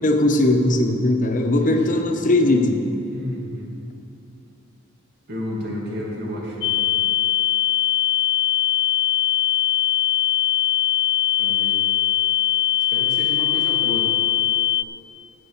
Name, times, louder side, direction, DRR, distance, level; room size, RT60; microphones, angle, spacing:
voice 1, 0.0-2.9, left 1 dB, 40° left, 4 dB, 1.0 m, -19 dB
voice 2, 1.4-2.0 3.1-3.7 5.3-6.7 11.4-11.8 12.9-14.1, left 1 dB, 55° right, -2 dB, 2.5 m, -32 dB
sound 1, 6.6-14.8, left 12 dB, 60° left, 0.4 m, -21 dB
11.5 x 8.9 x 7.2 m, 2.8 s
head